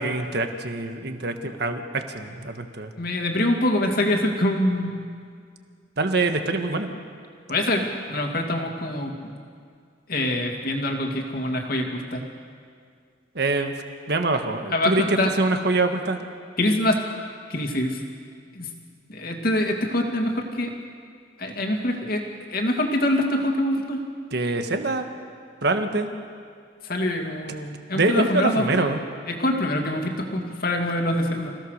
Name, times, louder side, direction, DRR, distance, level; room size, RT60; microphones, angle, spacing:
voice 1, 0.0-2.9 6.0-6.9 13.3-13.7 14.1-16.2 24.3-25.1 25.6-26.1 27.9-29.0, right 2 dB, 60° right, 6 dB, 1.6 m, -24 dB
voice 2, 3.0-5.0 6.7-6.8 7.5-9.3 10.1-12.2 14.7-15.3 16.6-17.0 17.5-18.0 18.5-18.7 19.1-20.7 21.4-22.2 22.5-24.0 26.8-28.9 29.3-31.5, left 1 dB, 50° left, 3 dB, 2.5 m, -25 dB
27.5 x 16.5 x 6.6 m, 2.2 s
head